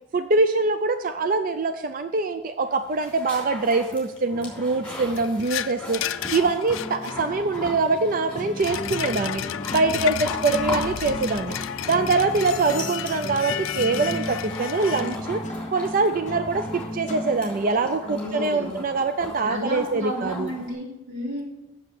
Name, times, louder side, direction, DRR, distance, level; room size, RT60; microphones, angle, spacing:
voice 1, 0.1-9.4 9.7-11.5 11.9-15.4 15.7-20.5, right 3 dB, 45° right, 9 dB, 0.4 m, -24 dB
sound 1, 2.7-20.7, left 1 dB, 5° left, 3.2 m, -39 dB
sound 2, 3.0-3.1 5.2-7.6 8.4-15.2, left 10 dB, 80° left, 0.4 m, -32 dB
sound 3, 4.3-18.3, left 1 dB, 35° left, 0.7 m, -36 dB
voice 2, 18.0-18.7 19.4-21.4, left 1 dB, 90° right, -4 dB, 3.3 m, -32 dB
7.7 x 7.2 x 6.6 m, 0.92 s
head